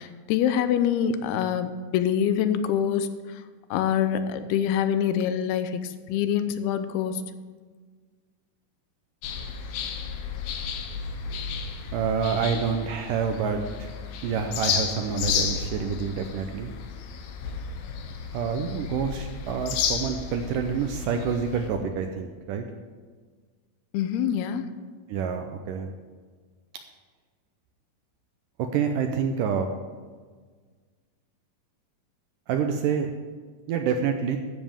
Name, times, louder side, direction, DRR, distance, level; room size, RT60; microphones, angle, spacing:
voice 1, 0.0-3.4 3.7-7.2 23.9-24.7, left 9 dB, 90° left, 10 dB, 2.7 m, -25 dB
sound 1, 9.2-21.7, left 6 dB, 70° left, 2.6 m, -32 dB
voice 2, 11.9-13.9 14.2-16.7 18.3-22.7 25.1-25.9 28.6-29.7 32.5-33.1 33.7-34.4, right 6 dB, 80° right, 5 dB, 2.0 m, -27 dB
14.5 x 12.5 x 3.6 m, 1.5 s
omnidirectional pair, 4.5 m